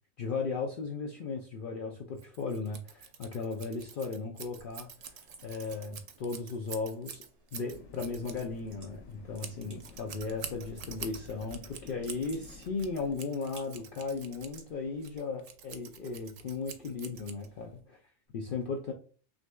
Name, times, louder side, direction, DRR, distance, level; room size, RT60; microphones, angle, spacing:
voice 1, 0.2-7.2 7.5-18.0 18.3-18.9, left 4 dB, 60° left, 2 dB, 0.6 m, -36 dB
Scissors, 2.2-17.8, right 7 dB, 85° right, 1.0 m, -47 dB
sound 1, 4.5-15.2, right 2 dB, 55° right, 1.8 m, -59 dB
sound 2, 7.5-13.2, left 5 dB, 90° left, 0.9 m, -52 dB
5.9 x 2.7 x 2.2 m, 0.39 s
omnidirectional pair, 1.2 m